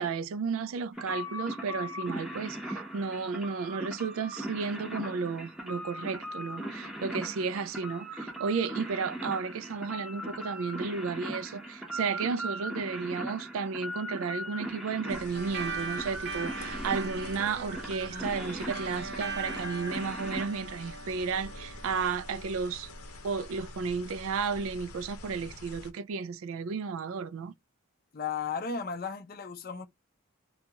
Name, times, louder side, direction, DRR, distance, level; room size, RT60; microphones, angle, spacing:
voice 1, 0.0-22.9 23.2-27.5, right 5 dB, 65° right, 0.3 m, -33 dB
sound 1, 0.9-20.5, right 1 dB, 5° right, 0.7 m, -39 dB
sound 2, 15.1-25.9, left 2 dB, 80° left, 0.7 m, -46 dB
sound 3, 15.3-24.2, right 3 dB, 45° right, 0.7 m, -42 dB
voice 2, 28.1-29.9, left 5 dB, 40° left, 0.5 m, -35 dB
2.8 x 2.3 x 2.8 m
head